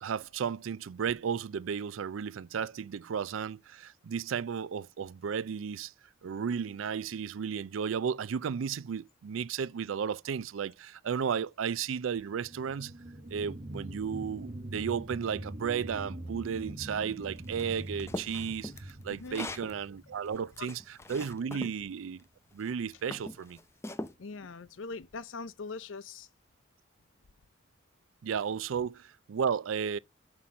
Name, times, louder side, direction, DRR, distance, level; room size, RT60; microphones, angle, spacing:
voice 1, 0.0-5.9 6.2-12.9 13.3-22.2 22.5-23.6 28.2-30.0, right 7 dB, 85° right, 0.4 m, -34 dB
sound 1, 12.3-21.3 21.8-21.9, right 1 dB, 40° right, 1.1 m, -43 dB
sound 2, 17.6-19.7 20.3-21.8 22.5-22.7 23.1-24.1, left 1 dB, 15° left, 0.7 m, -41 dB
voice 2, 19.1-19.5 20.6-20.7 21.5-21.7 24.2-26.3, left 4 dB, 75° left, 0.6 m, -42 dB
5.9 x 5.6 x 6.3 m
head